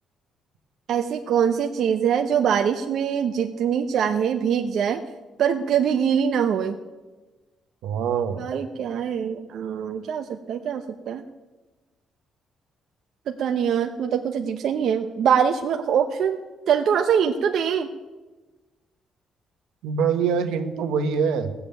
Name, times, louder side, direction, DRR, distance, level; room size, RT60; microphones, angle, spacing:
voice 1, 0.9-5.0 5.4-6.8 8.4-11.2 13.3-16.4 16.7-17.9, right 8 dB, 70° right, 5 dB, 0.8 m, -23 dB
voice 2, 7.8-8.4 19.8-21.5, right 6 dB, 90° right, 7 dB, 1.2 m, -24 dB
15.5 x 7.2 x 9.3 m, 1.2 s
cardioid pair, 90°, 0 cm